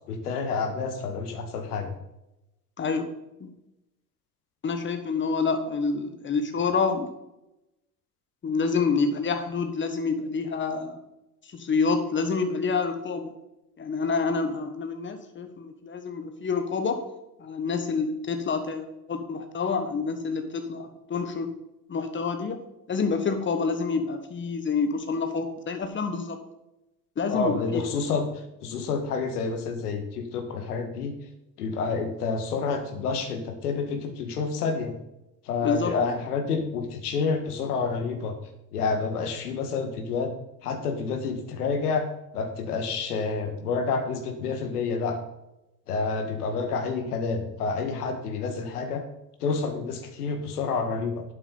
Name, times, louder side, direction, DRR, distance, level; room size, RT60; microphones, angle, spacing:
voice 1, 0.1-1.9 27.3-28.3 28.6-31.1 31.6-34.9 35.4-38.3 38.7-40.3 40.6-42.1 42.3-45.2 45.9-49.0 49.4-51.2, left 4 dB, 65° left, 5 dB, 1.8 m, -29 dB
voice 2, 2.8-3.1 3.4-3.5 4.6-7.1 8.4-11.0 11.5-13.3 13.8-17.0 17.4-21.5 21.9-22.6 22.9-26.4 27.2-27.8 35.6-35.9, left 4 dB, 25° left, 7 dB, 1.4 m, -27 dB
11.5 x 8.6 x 4.0 m, 0.92 s
figure-of-eight pair, 70°, 49 cm